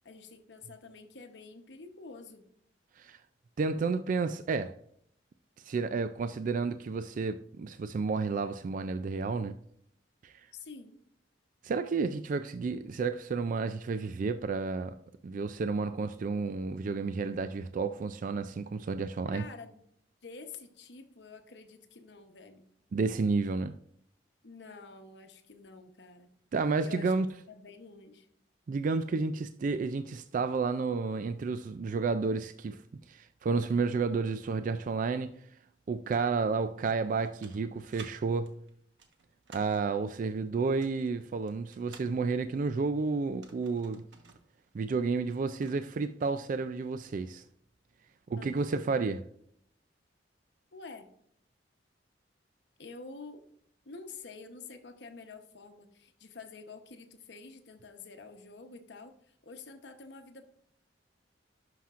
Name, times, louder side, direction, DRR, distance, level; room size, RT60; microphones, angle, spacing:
voice 1, 0.0-2.5 10.5-11.0 19.3-19.8 20.2-22.6 24.4-26.3 26.8-28.3 48.4-48.8 50.7-51.1 52.8-53.4 53.8-60.5, left 4 dB, 65° left, 1.0 m, -48 dB
voice 2, 3.6-4.8 5.6-9.6 10.2-10.5 11.6-15.0 15.2-19.4 22.9-23.7 26.5-27.3 28.7-35.4 35.9-38.5 39.5-44.0 44.7-47.4 48.3-49.2, right 4 dB, 45° right, 0.3 m, -31 dB
sound 1, 37.0-38.1 38.5-39.8 40.6-42.1 43.2-44.4 44.7-44.8 45.2-45.9, right 5 dB, 75° right, 1.2 m, -53 dB
11.5 x 5.8 x 2.5 m
head